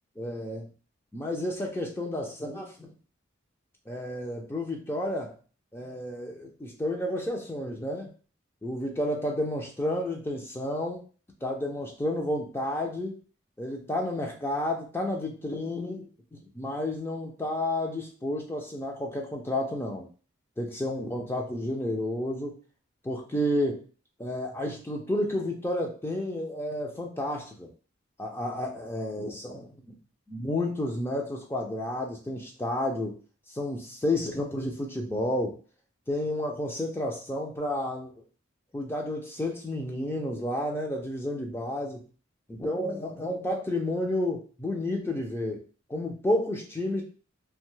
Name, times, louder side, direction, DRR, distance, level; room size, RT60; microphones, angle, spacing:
voice 1, 0.2-0.7 1.1-2.9 3.9-5.3 5.7-8.1 8.6-11.0 11.4-13.2 13.6-20.1 20.6-22.6 23.0-23.8 24.2-27.7 28.2-30.0 30.3-33.1 33.5-35.5 36.1-38.1 38.7-42.0 42.5-45.6 45.9-47.0, left 1 dB, 10° left, 1 dB, 0.3 m, -31 dB
2.7 x 2.2 x 3.0 m, 0.38 s
head